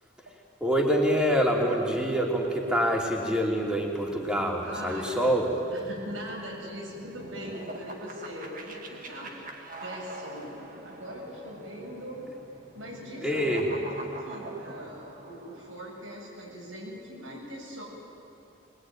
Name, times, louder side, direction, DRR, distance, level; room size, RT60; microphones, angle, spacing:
voice 1, 0.6-5.5 13.2-13.7, equal, 5° right, -1 dB, 3.0 m, -26 dB
sound 1, 3.4-16.0, right 2 dB, 40° right, 2.1 m, -45 dB
voice 2, 4.6-5.3 5.7-9.3 9.8-10.5 10.8-12.2 12.7-17.8, equal, 80° right, -2 dB, 8.0 m, -41 dB
23.5 x 22.0 x 9.4 m, 2.7 s
head